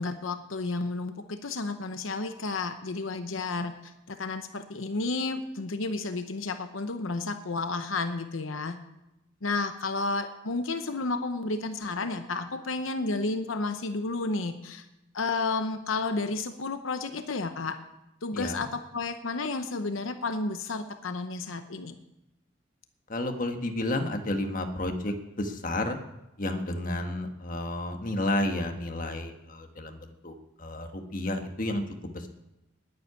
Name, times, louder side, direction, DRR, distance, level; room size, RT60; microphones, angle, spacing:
voice 1, 0.0-8.8 9.4-14.8 15.1-17.8 18.2-21.9, left 3 dB, 85° left, 8 dB, 0.9 m, -32 dB
voice 2, 18.3-18.7 23.1-26.0 26.4-32.3, left 1 dB, 45° left, 5 dB, 1.4 m, -31 dB
9.7 x 9.7 x 9.7 m, 0.91 s
head